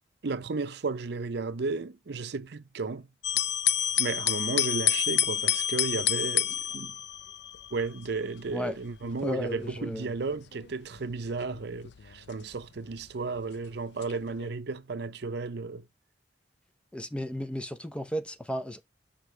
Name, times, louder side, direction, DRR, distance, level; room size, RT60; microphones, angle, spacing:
voice 1, 0.2-3.1 4.0-7.0 7.7-15.9, right 4 dB, 65° right, 0.6 m, -33 dB
sound 1, 3.2-13.4 14.0-14.5, left 11 dB, 70° left, 0.4 m, -30 dB
voice 2, 9.2-10.1 16.9-18.8, equal, 5° left, 0.5 m, -34 dB
6.6 x 5.7 x 3.2 m
head